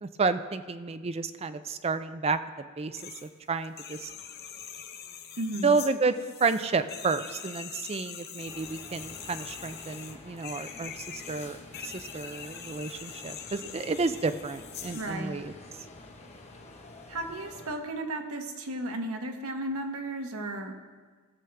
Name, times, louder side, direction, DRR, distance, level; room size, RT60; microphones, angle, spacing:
voice 1, 0.0-4.1 5.6-11.6 11.8-15.5, right 4 dB, 30° right, 10 dB, 0.4 m, -31 dB
sound 1, 2.9-3.3 3.6-15.2, left 8 dB, 45° left, 0.7 m, -43 dB
voice 2, 5.4-5.7 14.9-15.3 17.1-20.7, right 1 dB, 70° right, 3 dB, 1.1 m, -34 dB
sound 2, 8.4-17.8, left 2 dB, 30° left, 1.1 m, -49 dB
18.0 x 6.7 x 3.4 m, 1.5 s
head